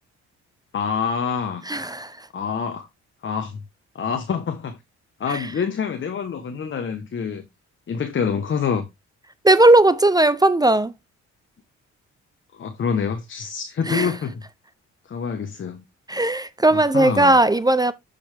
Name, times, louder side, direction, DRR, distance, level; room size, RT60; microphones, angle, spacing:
voice 1, 0.7-1.6 2.3-2.9 3.2-3.6 3.9-4.8 5.2-7.5 7.9-8.9 12.6-14.4 15.1-15.8 16.7-17.4, left 6 dB, 40° left, 1.0 m, -26 dB
voice 2, 1.6-2.3 5.3-5.5 9.4-10.9 13.9-14.1 16.1-17.9, right 2 dB, 15° right, 0.5 m, -17 dB
7.0 x 5.3 x 3.3 m
cardioid pair, 90°, 30 cm